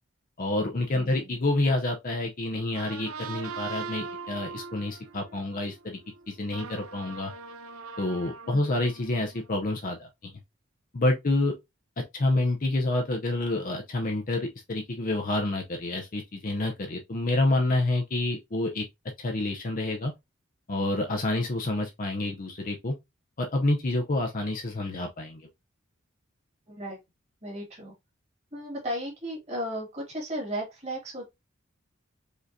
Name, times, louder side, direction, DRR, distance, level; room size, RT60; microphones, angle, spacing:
voice 1, 0.4-6.0 6.3-7.3 8.0-10.3 10.9-11.5 12.1-18.8 19.2-20.1 20.7-22.9 23.4-25.5, left 2 dB, 40° left, 0.7 m, -28 dB
voice 2, 0.9-1.4 8.5-8.6 26.7-27.0 27.4-27.9 28.5-31.3, equal, 30° right, 2.3 m, -35 dB
sound 1, 2.5-9.5, right 5 dB, 90° right, 0.5 m, -41 dB
5.1 x 3.9 x 2.7 m
head